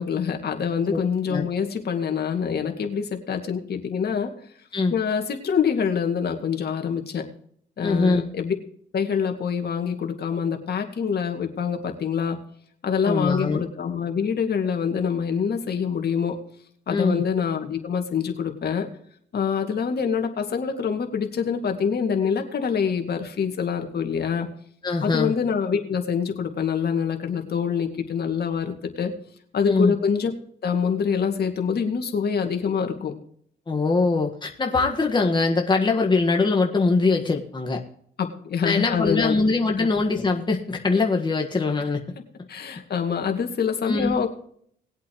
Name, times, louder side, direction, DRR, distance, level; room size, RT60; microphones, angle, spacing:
voice 1, 0.0-4.3 4.9-7.3 7.8-8.5 8.9-12.4 12.8-16.4 16.9-18.9 19.3-24.5 25.0-29.1 29.5-30.3 30.6-33.1 38.2-39.4 39.8-39.9 42.5-44.3, left 6 dB, 55° left, 4 dB, 2.2 m, -25 dB
voice 2, 7.8-8.2 13.0-13.6 16.9-17.2 24.8-25.3 29.6-29.9 33.7-37.8 38.6-42.0 43.8-44.2, left 3 dB, 20° left, 2 dB, 1.6 m, -22 dB
20.5 x 8.2 x 3.1 m, 0.63 s
cardioid pair, 90°, 20 cm